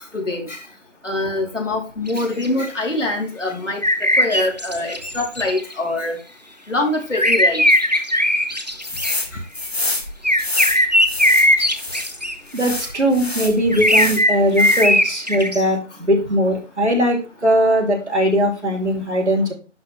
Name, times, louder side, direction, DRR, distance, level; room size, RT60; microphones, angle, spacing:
voice 1, 0.1-0.6 1.0-3.8 4.2-6.2 6.7-7.6 11.6-11.7 12.8-12.9, left 2 dB, 85° left, 0 dB, 3.6 m, -24 dB
sound 1, 2.1-2.5 3.8-5.7 7.1-9.1 10.2-12.3 13.7-15.6, left 1 dB, 35° right, 0.8 m, -18 dB
sound 2, 8.8-9.3 9.5-12.1 12.5-14.2 14.5-15.1, left 2 dB, 60° left, 2.0 m, -27 dB
voice 2, 12.5-17.2 17.4-19.5, equal, 65° right, 1 dB, 3.0 m, -19 dB
11.0 x 3.9 x 3.4 m, 0.31 s
figure-of-eight pair, 180°, 36 cm